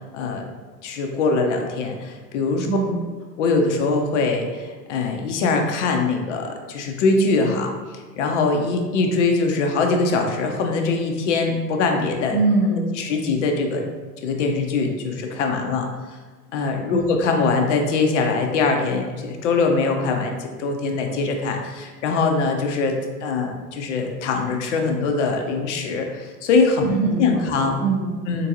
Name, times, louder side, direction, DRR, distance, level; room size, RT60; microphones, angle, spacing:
voice 1, 0.8-2.7 3.4-7.7 8.2-12.4 13.0-13.8 14.2-15.9 16.5-26.9 27.2-27.7 28.3-28.5, left 3 dB, 50° left, 3 dB, 0.6 m, -22 dB
voice 2, 2.6-3.0 12.3-12.9 16.9-17.1 26.8-28.1, right 3 dB, 5° right, -8 dB, 0.4 m, -23 dB
3.7 x 2.6 x 2.8 m, 1.3 s
figure-of-eight pair, 100°, 49 cm